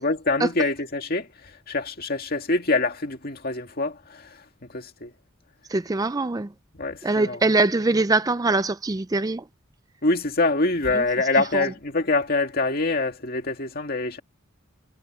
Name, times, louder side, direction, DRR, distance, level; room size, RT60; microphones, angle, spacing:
voice 1, 0.0-5.1 6.8-7.4 10.0-14.2, left 3 dB, 45° left, 2.2 m, -25 dB
voice 2, 5.7-6.5 7.0-9.5 10.9-11.0 11.5-11.7, right 3 dB, 15° right, 0.4 m, -23 dB
head